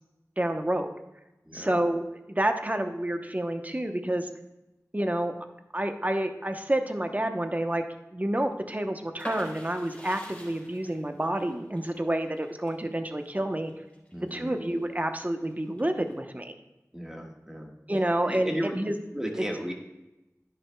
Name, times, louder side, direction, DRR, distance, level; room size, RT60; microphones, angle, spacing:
voice 1, 0.4-0.9 1.5-4.3 4.9-5.3 5.7-7.8 8.1-13.7 14.3-16.5 17.9-19.0 19.4-19.5, right 1 dB, 25° right, 6 dB, 0.8 m, -29 dB
voice 2, 1.4-1.8 14.1-14.5 16.9-17.7 18.2-18.8 19.1-19.7, equal, 10° right, 1 dB, 1.5 m, -34 dB
sound 1, 9.2-14.8 15.3-16.1, equal, 25° left, 3.4 m, -45 dB
10.5 x 10.0 x 2.2 m, 0.99 s
wide cardioid pair, 45°, 6 cm